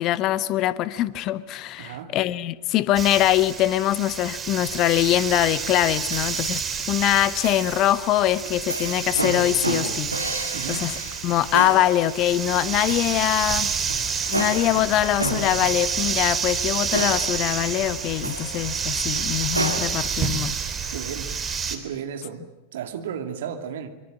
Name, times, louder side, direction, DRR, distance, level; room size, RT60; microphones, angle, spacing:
voice 1, 0.0-6.6 6.9-10.1 10.7-10.9 11.2-13.7 14.3-20.5, left 13 dB, 35° left, 16 dB, 1.2 m, -23 dB
voice 2, 1.8-2.1 10.5-10.9 20.9-21.4 21.7-22.4 22.7-23.9, right 8 dB, 55° right, 6 dB, 2.7 m, -34 dB
sound 1, 3.0-21.8, right 6 dB, 20° right, 3.4 m, -29 dB
sound 2, 4.8-5.6 6.1-6.8 7.4-8.0 8.7-19.8, right 2 dB, 85° right, 2.6 m, -32 dB
26.0 x 24.0 x 8.9 m, 1.1 s
figure-of-eight pair, 90°, 0 cm